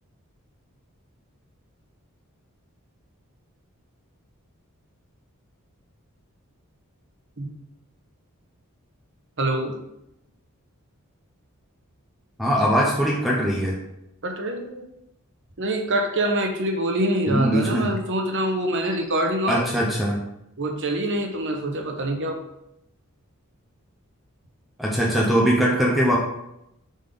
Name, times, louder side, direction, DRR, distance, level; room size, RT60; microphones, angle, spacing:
voice 1, 9.4-9.8 14.2-14.8 15.6-19.9 20.6-22.3, right 1 dB, 55° right, 3 dB, 1.0 m, -25 dB
voice 2, 12.4-13.8 17.3-17.9 19.5-20.2 24.8-26.2, equal, ahead, -4 dB, 0.7 m, -21 dB
5.2 x 4.0 x 5.3 m, 0.84 s
head